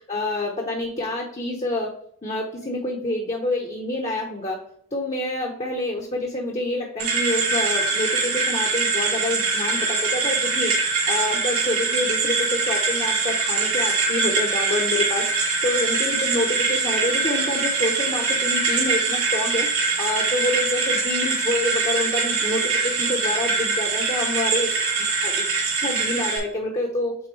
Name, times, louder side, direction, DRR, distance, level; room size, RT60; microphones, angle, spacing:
voice 1, 0.1-1.9 2.2-4.6 4.9-10.7 11.1-19.7 20.0-24.8 25.2-25.3 25.8-27.2, left 1 dB, 30° left, 0 dB, 0.8 m, -27 dB
sound 1, 7.0-26.4, right 4 dB, 90° right, 2.4 m, -23 dB
8.7 x 3.7 x 3.1 m, 0.64 s
head